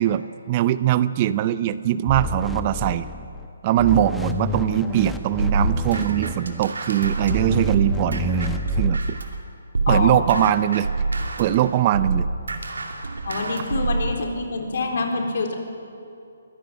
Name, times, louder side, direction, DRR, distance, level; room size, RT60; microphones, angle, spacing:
voice 1, 0.0-3.1 3.6-9.0 9.9-10.9 11.4-12.3, right 12 dB, 30° right, 15 dB, 0.6 m, -21 dB
sound 1, 2.1-3.5 3.8-6.7 7.2-8.9, left 3 dB, 5° left, 1.0 m, -30 dB
sound 2, 5.4-9.4 9.7-14.1, right 3 dB, 85° right, 2.6 m, -26 dB
voice 2, 9.9-10.5 13.2-15.5, left 3 dB, 60° left, 3 dB, 3.8 m, -26 dB
22.5 x 14.0 x 9.6 m, 2.6 s
hypercardioid pair, 150°, 0 cm